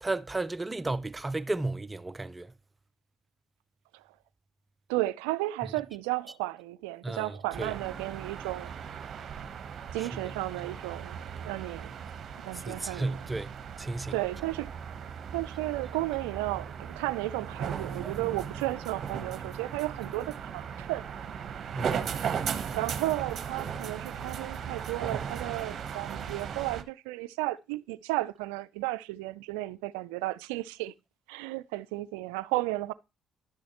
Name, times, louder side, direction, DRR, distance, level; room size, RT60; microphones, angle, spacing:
voice 1, 0.0-2.5 7.0-7.7 10.0-10.1 12.7-13.5 13.8-14.1 21.7-22.0, right 2 dB, 20° right, 0.5 m, -33 dB
voice 2, 4.9-8.7 9.9-12.0 12.4-13.3 14.1-14.7 15.0-21.1 22.7-30.9 31.3-32.9, right 18 dB, 85° right, 0.3 m, -34 dB
sound 1, 7.5-26.8, right 7 dB, 55° right, 0.9 m, -37 dB
11.5 x 6.3 x 2.9 m
hypercardioid pair, 55°, 0 cm